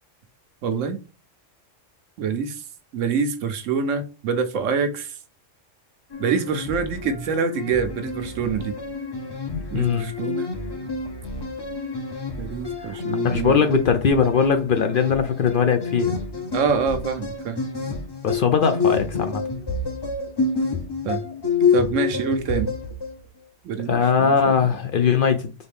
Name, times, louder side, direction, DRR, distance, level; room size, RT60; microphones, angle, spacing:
voice 1, 0.6-1.0 2.2-2.6 2.9-5.1 6.2-8.8 9.7-10.5 12.4-13.6 16.5-17.7 21.0-21.2 21.7-22.7 23.6-24.7, right 5 dB, 80° right, 1.1 m, -26 dB
sound 1, 6.1-23.2, left 4 dB, 25° left, 0.7 m, -28 dB
voice 2, 9.5-10.1 13.2-16.2 18.2-19.4 23.9-25.5, left 6 dB, 60° left, 0.6 m, -20 dB
4.2 x 3.6 x 3.4 m
omnidirectional pair, 1.3 m